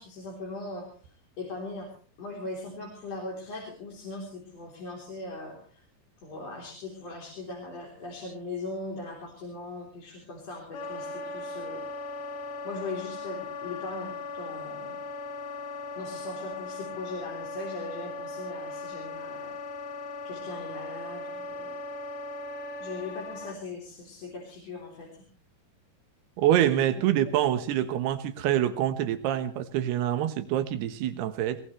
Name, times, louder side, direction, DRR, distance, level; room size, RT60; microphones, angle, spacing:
voice 1, 0.0-1.9 2.2-5.8 6.2-11.8 12.6-15.0 16.0-19.6 20.2-21.8 22.8-25.2 27.0-27.1, left 2 dB, 40° left, -2 dB, 4.6 m, -39 dB
Wind instrument woodwind instrument, 10.7-23.6, left 3 dB, 65° left, 2.7 m, -38 dB
voice 2, 26.4-31.6, right 11 dB, 85° right, 10 dB, 3.3 m, -26 dB
22.5 x 18.5 x 3.3 m, 0.43 s
omnidirectional pair, 4.5 m